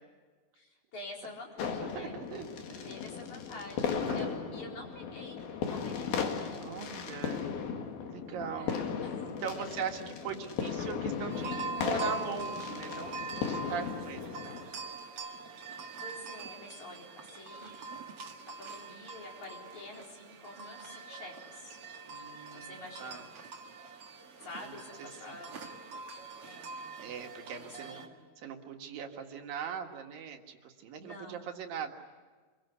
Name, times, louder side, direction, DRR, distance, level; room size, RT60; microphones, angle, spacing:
voice 1, 0.5-2.2 2.8-5.4 5.7-7.3 8.5-9.3 9.6-9.8 15.6-17.8 18.6-21.8 22.5-23.3 24.4-25.6 26.4-27.2 27.5-28.2 31.0-31.4, left 2 dB, 55° left, -1 dB, 5.7 m, -48 dB
sound 1, 1.6-14.7, left 6 dB, 90° left, 3.9 m, -36 dB
voice 2, 1.8-3.0 4.1-4.7 6.6-7.7 8.1-8.8 9.2-14.6 22.0-23.2 24.6-24.7 27.0-28.0 28.4-31.9, right 6 dB, 75° right, 3 dB, 3.5 m, -40 dB
sound 2, 11.3-28.1, right 4 dB, 45° right, 2.3 m, -44 dB
27.5 x 23.0 x 8.2 m, 1.4 s
omnidirectional pair, 4.1 m